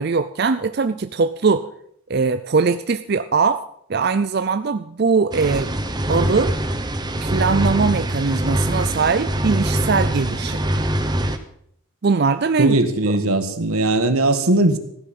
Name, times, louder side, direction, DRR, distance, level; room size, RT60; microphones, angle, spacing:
voice 1, 0.0-1.7 2.1-3.6 3.9-5.7 6.1-6.5 7.2-10.6 12.0-12.8 13.1-13.2, right 4 dB, 50° right, 10 dB, 0.5 m, -20 dB
sound 1, 5.3-11.4, right 1 dB, 20° right, 0.8 m, -23 dB
voice 2, 12.6-14.8, right 2 dB, 90° right, 9 dB, 1.5 m, -19 dB
15.0 x 10.0 x 5.8 m, 0.69 s
head